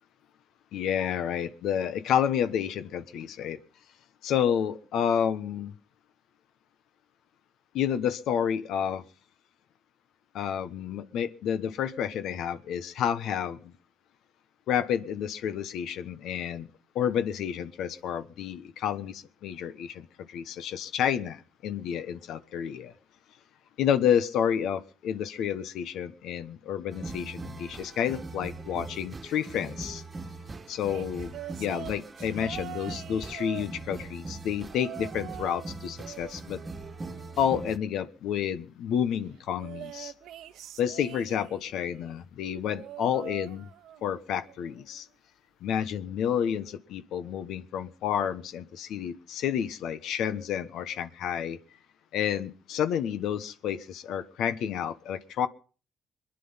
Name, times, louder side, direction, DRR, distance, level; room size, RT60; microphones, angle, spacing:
voice 1, 0.7-3.6 4.2-5.7 7.7-9.0 10.3-13.7 14.7-16.7 16.9-22.9 23.8-30.0 30.7-31.3 31.6-36.6 37.4-40.1 40.8-43.7 44.0-45.1 45.6-51.6 52.1-55.5, left 9 dB, 80° left, 12 dB, 1.2 m, -30 dB
sound 1, 26.9-37.8, right 3 dB, 30° right, 1.4 m, -41 dB
sound 2, 30.9-34.2 34.7-35.7 36.0-37.5 39.6-41.8 42.6-44.1 44.5-44.8 46.0-46.1, right 12 dB, 85° right, 0.8 m, -44 dB
23.0 x 10.5 x 5.7 m, 0.39 s
cardioid pair, 90°, 0 cm